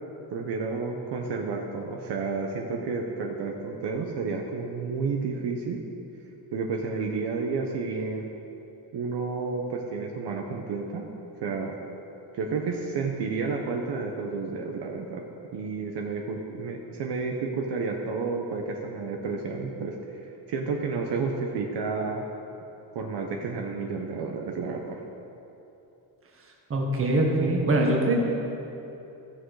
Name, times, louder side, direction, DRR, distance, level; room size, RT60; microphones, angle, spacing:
voice 1, 0.3-5.8 6.5-8.3 8.9-11.1 11.4-11.7 12.3-15.2 15.5-20.2 20.5-22.2 22.9-25.0, right 4 dB, 65° right, 1 dB, 1.1 m, -31 dB
voice 2, 26.7-28.2, right 2 dB, 30° right, 0 dB, 1.7 m, -23 dB
15.5 x 6.4 x 4.8 m, 3.0 s
cardioid pair, 140°, 45 cm